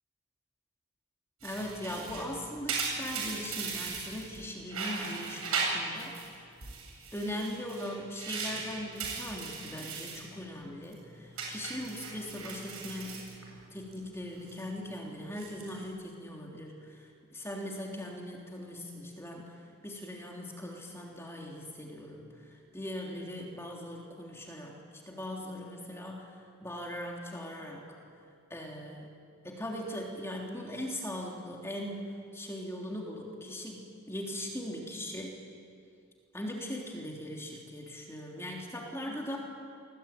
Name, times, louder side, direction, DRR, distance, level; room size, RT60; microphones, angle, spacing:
voice 1, 1.4-6.5 7.1-13.3 13.7-19.5 19.8-22.3 22.7-24.7 25.1-27.8 28.5-29.1 29.4-35.5 36.3-39.4, left 1 dB, 10° left, -1 dB, 3.4 m, -40 dB
sound 1, 1.4-4.4 4.7-6.3 6.6-10.3 10.6-10.9 11.4-13.9 14.2-14.6 15.2-15.8, right 4 dB, 80° right, 7.7 m, -38 dB
27.0 x 21.5 x 9.2 m, 2.4 s
head